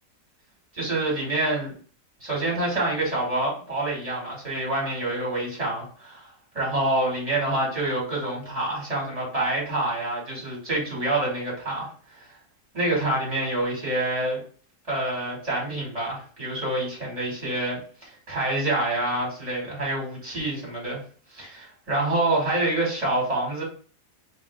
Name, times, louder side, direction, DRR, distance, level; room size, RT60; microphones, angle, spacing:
voice 1, 0.7-1.7 2.2-6.3 6.5-11.9 12.7-14.4 14.9-21.0 21.3-23.6, right 2 dB, 20° right, -4 dB, 2.4 m, -27 dB
3.6 x 3.5 x 3.6 m, 0.43 s
omnidirectional pair, 1.7 m